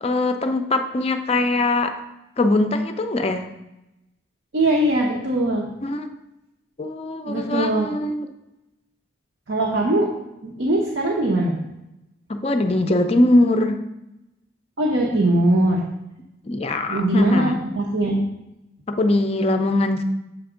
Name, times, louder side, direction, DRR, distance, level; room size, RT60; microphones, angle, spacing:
voice 1, 0.0-1.9 2.4-3.5 5.8-6.1 6.8-8.3 12.3-13.8 16.4-17.6 19.0-20.0, left 2 dB, 30° left, 7 dB, 0.4 m, -21 dB
voice 2, 4.5-5.6 7.3-7.9 9.5-10.1 10.4-11.6 14.8-15.8 16.9-18.2, right 1 dB, 60° right, -2 dB, 0.8 m, -21 dB
7.3 x 3.4 x 5.0 m, 0.91 s
head